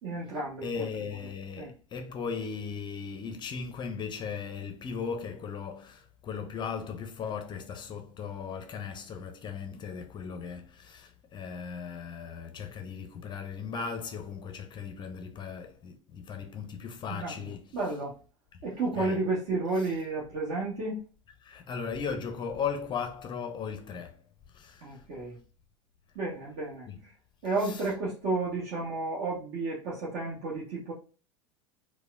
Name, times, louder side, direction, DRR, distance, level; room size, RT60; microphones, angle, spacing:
voice 1, 0.0-0.7 1.6-1.7 17.1-17.4 17.7-18.2 18.6-21.0 24.8-25.4 26.1-27.1 27.4-30.9, right 3 dB, 50° right, 1.0 m, -32 dB
voice 2, 0.6-17.8 18.9-19.2 21.4-24.2 24.5-25.1 26.9-27.0 27.6-27.8, left 6 dB, 30° left, 0.5 m, -37 dB
4.7 x 2.1 x 2.2 m
figure-of-eight pair, 80°, 16 cm